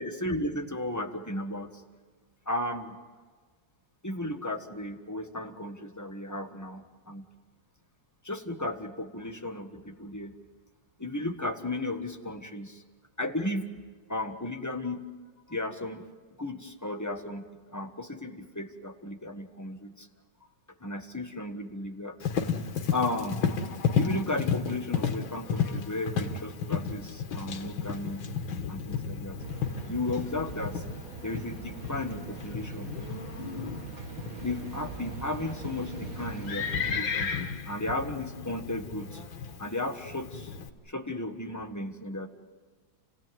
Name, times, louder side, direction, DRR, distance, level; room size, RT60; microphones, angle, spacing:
voice 1, 0.0-1.7 2.5-3.0 4.0-7.2 8.2-10.3 11.0-12.8 13.2-13.7 14.1-15.1 15.5-16.0 16.4-20.1 20.8-22.3 22.9-23.5 23.9-28.2 28.7-29.4 29.9-30.8 31.2-32.9 34.4-37.3 37.7-39.2 39.6-40.5 40.9-42.3, left 2 dB, 10° left, 5 dB, 1.2 m, -34 dB
Livestock farm animals working animals, 22.2-40.7, left 6 dB, 85° left, 2.2 m, -33 dB
sound 1, 29.4-37.0, right 6 dB, 50° right, 1.7 m, -42 dB
29.5 x 16.5 x 9.3 m, 1.5 s
omnidirectional pair, 2.1 m